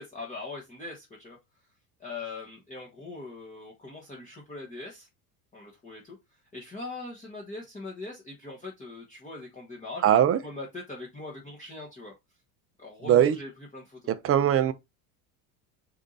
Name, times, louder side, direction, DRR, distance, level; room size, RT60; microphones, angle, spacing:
voice 1, 0.0-1.4 2.0-5.1 5.5-10.1 10.4-12.1 12.8-14.1, left 3 dB, 15° left, 1.1 m, -41 dB
voice 2, 10.0-10.4 13.1-13.4 14.1-14.7, right 10 dB, 30° right, 0.5 m, -20 dB
4.5 x 2.7 x 3.8 m
supercardioid pair, 115°, 48 cm